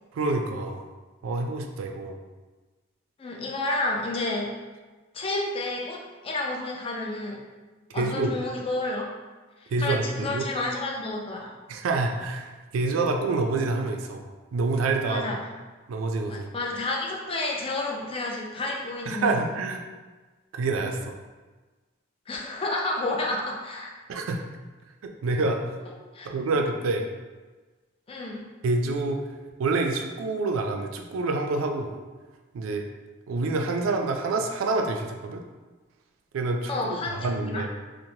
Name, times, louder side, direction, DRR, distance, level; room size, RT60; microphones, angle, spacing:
voice 1, 0.1-0.8 1.2-2.2 7.9-8.3 9.7-10.4 11.7-14.2 14.5-15.4 15.9-16.5 19.1-19.8 20.5-21.1 24.1-24.4 25.2-25.6 26.2-27.1 28.6-29.2 29.6-31.9 32.5-32.9 33.3-35.4 36.3-37.7, right 3 dB, 90° right, 3 dB, 0.3 m, -27 dB
voice 2, 3.2-4.5 5.1-7.4 7.9-9.0 9.6-11.5 15.1-15.4 16.3-19.4 22.3-23.9 26.1-26.3 28.1-28.5 36.7-37.6, left 2 dB, 30° left, -1 dB, 0.4 m, -30 dB
3.0 x 2.1 x 2.6 m, 1.3 s
head